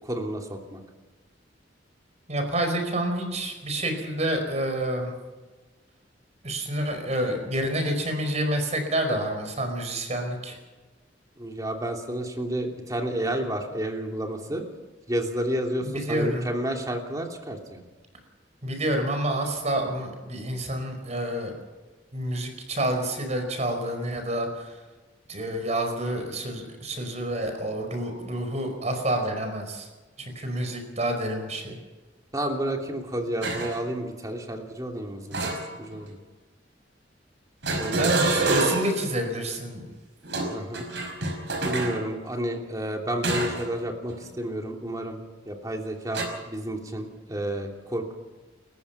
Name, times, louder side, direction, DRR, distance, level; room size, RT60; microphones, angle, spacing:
voice 1, 0.0-0.8 11.4-14.6 15.1-17.8 32.3-35.5 35.8-36.2 37.8-38.1 40.5-40.9 41.6-45.2 45.4-48.1, right 1 dB, 20° right, 2 dB, 2.9 m, -31 dB
voice 2, 2.3-5.1 6.4-10.6 15.8-16.4 18.6-21.5 22.1-24.8 25.3-29.9 30.2-31.8 37.9-39.9, right 1 dB, 35° right, 5 dB, 4.9 m, -28 dB
sound 1, 33.4-33.8 35.3-36.1 37.6-39.0 40.2-42.0 43.2-43.7 44.1-44.3 46.1-46.2, right 2 dB, 65° right, 5.2 m, -27 dB
29.5 x 15.0 x 5.9 m, 1.3 s
head